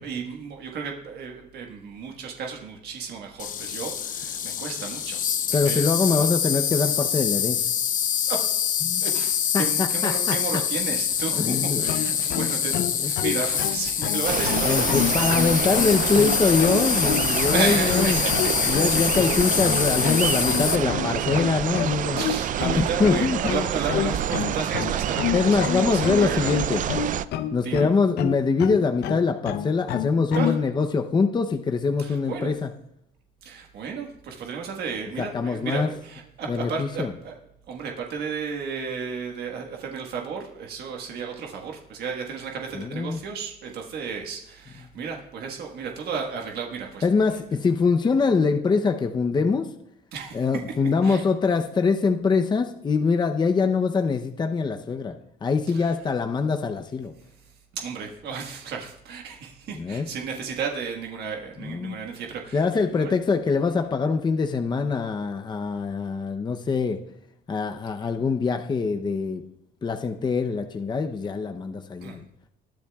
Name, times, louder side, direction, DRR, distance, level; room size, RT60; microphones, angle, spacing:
voice 1, 0.0-5.2 5.5-6.3 8.3-8.4 9.0-15.6 17.5-19.0 20.1-20.4 22.2-26.5 27.6-27.9 30.3-30.5 32.0-32.5 33.4-37.3 37.7-47.1 50.1-50.4 51.0-51.3 55.7-55.9 57.7-63.1 72.0-72.2, right 5 dB, 70° right, 1 dB, 1.5 m, -33 dB
Insect, 3.4-20.8, left 8 dB, 50° left, 0.9 m, -25 dB
voice 2, 5.5-7.6 8.8-9.0 9.5-10.6 11.3-11.9 13.0-13.1 14.6-18.2 18.7-22.2 22.7-23.5 25.3-26.8 27.5-32.7 35.2-35.9 36.5-37.1 42.8-43.2 47.0-49.7 50.3-55.1 55.4-57.1 59.7-60.1 61.6-62.0 62.5-67.0 67.5-69.4 69.8-72.2, left 4 dB, 25° left, 5 dB, 0.7 m, -24 dB
sound 1, 11.9-30.6, left 10 dB, 80° left, 0.7 m, -29 dB
sound 2, 14.2-27.3, right 10 dB, 50° right, 0.5 m, -27 dB
20.5 x 10.0 x 2.4 m, 0.77 s
cardioid pair, 110°, 17 cm